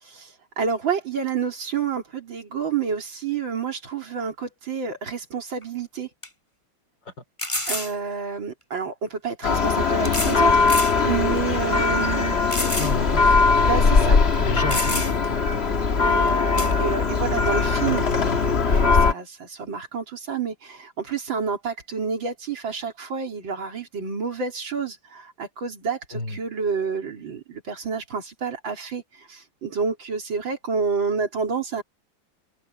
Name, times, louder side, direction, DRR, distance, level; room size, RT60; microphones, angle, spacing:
voice 1, 0.0-6.1 7.7-12.4 13.6-14.2 16.0-31.8, right 5 dB, 85° right, 4.0 m, -29 dB
sound 1, 5.6-5.7 6.2-6.3 7.4-7.9 9.1-9.2 10.0-10.4 10.7-11.0 11.5-11.6 12.5-13.0 13.3-13.4 14.3-14.4 14.7-15.3 16.6-16.7, left 1 dB, 15° left, 5.4 m, -28 dB
Church bell, 9.4-19.1, left 4 dB, 35° left, 1.4 m, -20 dB
voice 2, 12.8-13.4 14.0-15.5 26.1-26.4, left 2 dB, 70° left, 3.8 m, -32 dB
omnidirectional pair, 2.1 m